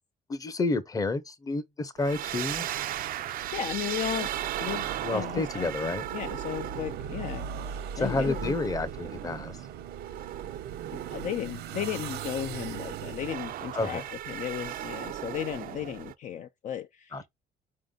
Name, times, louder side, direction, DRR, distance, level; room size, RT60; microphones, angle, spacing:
voice 1, 0.3-2.7 5.0-6.0 8.0-9.6 13.7-14.0 17.1-17.3, left 2 dB, 20° left, 0.7 m, -30 dB
sound 1, 2.0-16.1, right 12 dB, 60° right, 0.5 m, -37 dB
sound 2, 3.4-13.3, right 7 dB, 80° right, 0.9 m, -41 dB
voice 2, 3.5-4.3 4.6-8.5 10.9-17.2, left 10 dB, 50° left, 0.4 m, -35 dB
4.9 x 2.5 x 3.7 m
cardioid pair, 110°, 17 cm